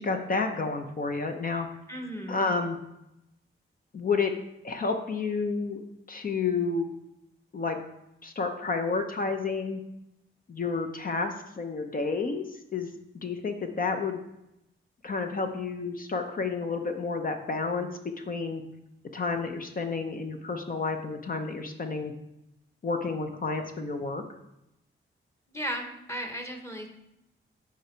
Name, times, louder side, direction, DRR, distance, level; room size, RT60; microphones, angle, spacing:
voice 1, 0.0-1.7 2.3-2.8 3.9-4.3 4.6-5.8 6.1-6.9 7.5-7.8 8.2-9.8 10.5-14.2 15.0-18.6 19.1-22.1 22.8-24.2, left 4 dB, 45° left, 5 dB, 0.7 m, -30 dB
voice 2, 1.9-2.5 25.5-26.9, equal, 15° left, 3 dB, 1.1 m, -35 dB
8.3 x 5.0 x 4.5 m, 0.87 s
wide cardioid pair, 140°, 21 cm